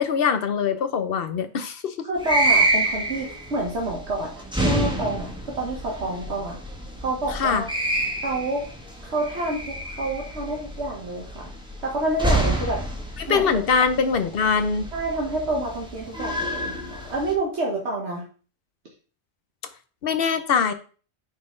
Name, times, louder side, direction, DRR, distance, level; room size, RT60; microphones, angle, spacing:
voice 1, 0.0-1.9 7.3-7.6 13.2-14.9 20.0-20.7, left 6 dB, 60° left, 9 dB, 1.0 m, -23 dB
voice 2, 2.1-4.3 4.6-6.6 7.0-7.7 8.2-8.7 9.0-11.5 11.8-12.8 13.3-13.6 14.9-18.2, right 2 dB, 75° right, -2 dB, 1.6 m, -28 dB
sound 1, 2.2-17.3, right 1 dB, 5° right, 1.3 m, -28 dB
9.3 x 4.2 x 3.8 m, 0.38 s
omnidirectional pair, 1.2 m